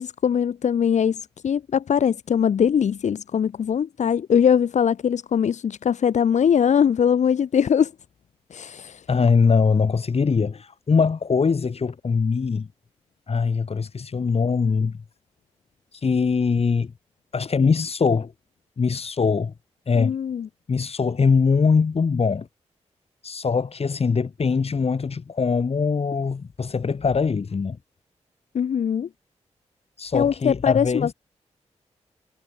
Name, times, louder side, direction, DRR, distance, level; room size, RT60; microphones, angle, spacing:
voice 1, 0.0-7.9 8.5-9.0 20.0-20.5 28.5-29.1 30.1-31.1, left 8 dB, 80° left, 1.3 m, -21 dB
voice 2, 9.1-12.7 13.3-15.0 15.9-16.9 17.3-18.3 18.8-19.5 19.9-20.2 20.7-22.5 23.2-27.8 30.0-31.1, left 5 dB, 60° left, 5.5 m, -22 dB
cardioid pair, 65°, 12 cm